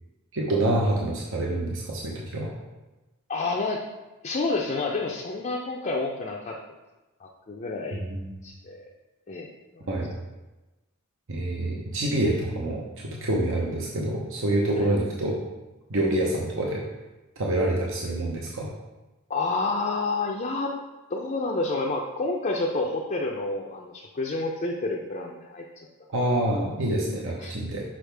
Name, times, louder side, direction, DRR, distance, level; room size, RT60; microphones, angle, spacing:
voice 1, 0.3-2.5 7.9-8.4 9.9-10.1 11.3-15.4 15.9-16.8 17.4-18.7 26.1-27.8, right 1 dB, 65° right, -2 dB, 0.9 m, -27 dB
voice 2, 3.3-3.8 4.2-6.5 7.2-8.0 8.4-8.8 9.3-9.9 14.8-14.9 19.3-20.7 21.1-25.9 26.5-26.7 27.4-27.5, left 3 dB, 35° left, -1 dB, 0.5 m, -29 dB
6.3 x 5.6 x 3.4 m, 1.1 s
head